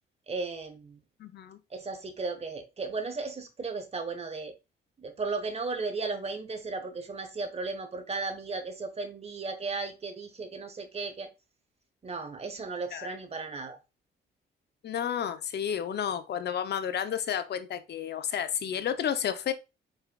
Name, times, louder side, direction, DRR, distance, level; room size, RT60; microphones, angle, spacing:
voice 1, 0.3-1.0 1.7-4.5 5.0-11.3 12.0-13.8, right 4 dB, 30° right, 1.2 m, -35 dB
voice 2, 1.2-1.6 12.9-13.1 14.8-19.5, left 9 dB, 55° left, 0.7 m, -31 dB
4.7 x 4.6 x 2.4 m
cardioid pair, 90°, 20 cm